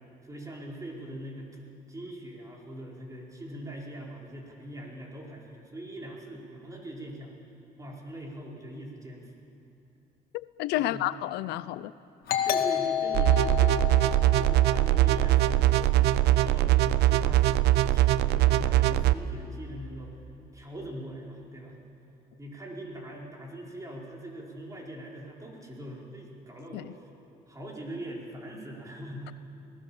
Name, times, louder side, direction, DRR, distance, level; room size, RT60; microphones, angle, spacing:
voice 1, 0.2-1.6 1.9-7.3 7.8-9.3 10.8-11.0 12.4-20.2 20.5-21.7 22.4-27.1 27.5-29.3, right 1 dB, 20° right, 4.7 m, -41 dB
voice 2, 10.6-11.9 26.7-26.9, left 15 dB, 85° left, 0.6 m, -30 dB
Doorbell, 12.3-15.6, left 9 dB, 65° left, 1.9 m, -31 dB
sound 1, 13.1-19.1, right 14 dB, 75° right, 0.6 m, -22 dB
29.0 x 19.0 x 7.3 m
cardioid pair, 110°, 17 cm